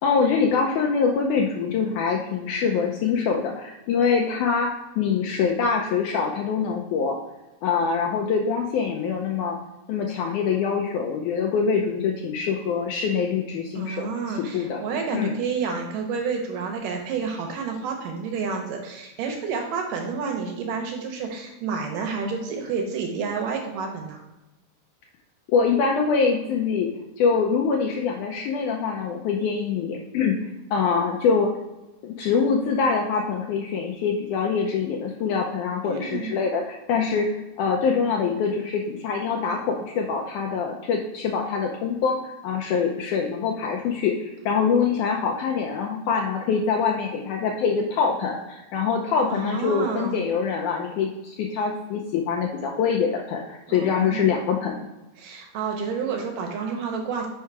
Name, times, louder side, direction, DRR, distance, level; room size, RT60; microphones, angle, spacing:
voice 1, 0.0-4.7 5.0-7.2 7.6-9.6 9.9-14.1 14.4-14.8 15.1-15.3 25.5-26.9 27.2-30.4 30.7-31.5 32.0-37.3 37.6-54.8, left 5 dB, 75° left, 1 dB, 1.9 m, -24 dB
voice 2, 13.7-24.2 35.8-36.3 49.3-50.2 53.7-54.2 55.2-57.3, right 5 dB, 70° right, 2 dB, 2.5 m, -29 dB
6.0 x 5.4 x 4.7 m, 1.0 s
omnidirectional pair, 4.2 m